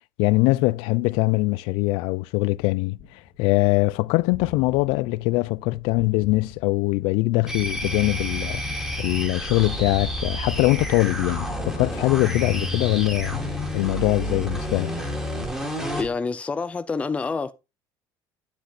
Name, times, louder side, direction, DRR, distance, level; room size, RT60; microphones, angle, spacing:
voice 1, 0.2-3.0 3.4-8.6 9.0-13.4 13.7-14.9, left 22 dB, 85° left, 0.4 m, -22 dB
Gunshot gunfire, 3.0-12.7 13.1-14.5, left 7 dB, 65° left, 2.0 m, -44 dB
sound 1, 7.5-16.1, equal, 5° right, 2.4 m, -30 dB
voice 2, 16.0-17.5, left 4 dB, 15° left, 0.5 m, -27 dB
10.0 x 5.8 x 4.2 m
cardioid pair, 145°, 9 cm